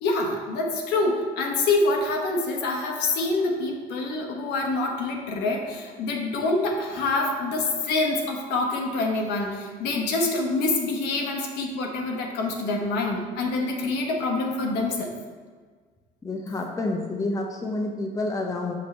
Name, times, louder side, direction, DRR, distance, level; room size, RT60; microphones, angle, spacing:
voice 1, 0.0-15.1, left 2 dB, 90° left, 1 dB, 1.0 m, -26 dB
voice 2, 16.2-18.7, left 2 dB, 20° left, 1 dB, 0.8 m, -29 dB
6.0 x 5.7 x 3.2 m, 1.5 s
cardioid pair, 110°, 17 cm